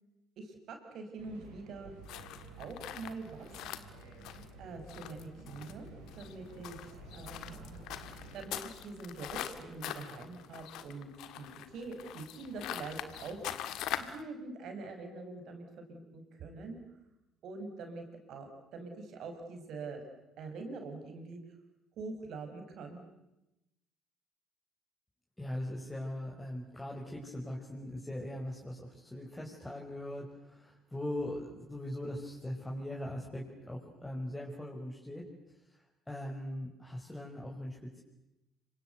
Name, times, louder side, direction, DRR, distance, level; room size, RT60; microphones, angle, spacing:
voice 1, 0.4-1.9 2.6-3.6 4.6-5.9 6.2-6.8 7.1-7.8 8.1-13.4 13.7-13.8 14.0-16.8 17.4-20.0 20.4-21.4 22.0-23.0, right 3 dB, 60° right, 5 dB, 5.6 m, -44 dB
sound 1, 1.2-8.4, right 4 dB, 80° right, 5.1 m, -52 dB
sound 2, 2.1-14.2, left 11 dB, 65° left, 1.6 m, -43 dB
voice 2, 25.4-35.2 36.1-38.0, left 1 dB, 10° left, -2 dB, 5.5 m, -40 dB
27.5 x 24.5 x 8.1 m, 0.92 s
hypercardioid pair, 50°, 0 cm